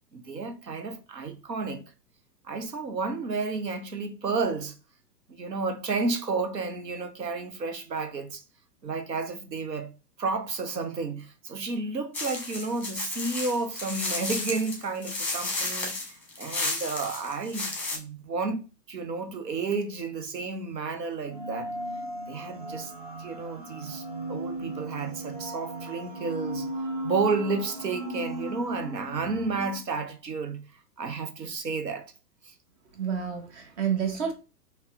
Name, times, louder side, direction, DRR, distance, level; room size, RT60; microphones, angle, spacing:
voice 1, 0.1-1.8 2.4-4.7 5.3-8.4 8.8-9.9 10.2-18.6 18.9-21.7 22.3-22.9 23.2-24.0 24.3-26.7 27.0-30.6 31.0-32.1, right 4 dB, 90° right, 0.8 m, -31 dB
sound 1, 12.1-18.0, left 2 dB, 5° left, 0.9 m, -32 dB
sound 2, 21.3-29.8, right 1 dB, 30° right, 0.4 m, -36 dB
voice 2, 32.9-34.3, right 7 dB, 45° right, 1.0 m, -29 dB
5.2 x 2.2 x 2.5 m
figure-of-eight pair, 110°, 48 cm